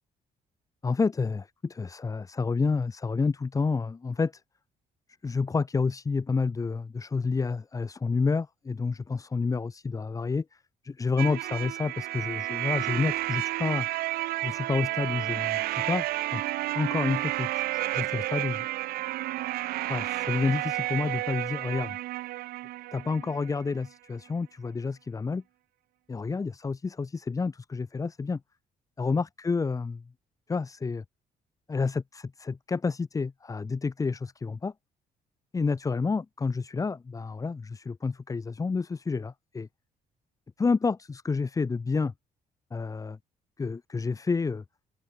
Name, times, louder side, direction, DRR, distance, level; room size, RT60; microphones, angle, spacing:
voice 1, 0.8-4.4 5.2-10.4 10.8-13.9 14.4-16.1 16.3-16.4 16.7-18.7 19.9-22.0 22.9-25.4 26.1-28.4 29.0-30.0 30.5-31.0 31.7-34.7 35.5-39.7 40.6-42.1 42.7-43.2 43.6-44.6, left 4 dB, 20° left, 1.0 m, -29 dB
sound 1, 11.2-23.8, right 17 dB, 85° right, 0.4 m, -31 dB
open air
cardioid pair, 130°, 15 cm